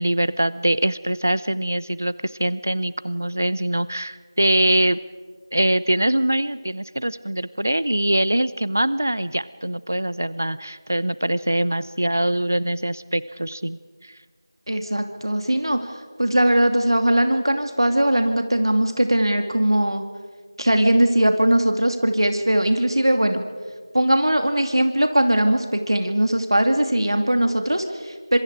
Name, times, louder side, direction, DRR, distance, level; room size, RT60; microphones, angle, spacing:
voice 1, 0.0-5.0 5.5-14.1, right 1 dB, 35° right, 18 dB, 0.6 m, -23 dB
voice 2, 14.7-15.8 16.2-20.0 20.6-23.4 23.9-28.4, right 1 dB, 80° right, 5 dB, 2.7 m, -20 dB
27.5 x 26.0 x 4.9 m, 1.5 s
figure-of-eight pair, 180°, 2 cm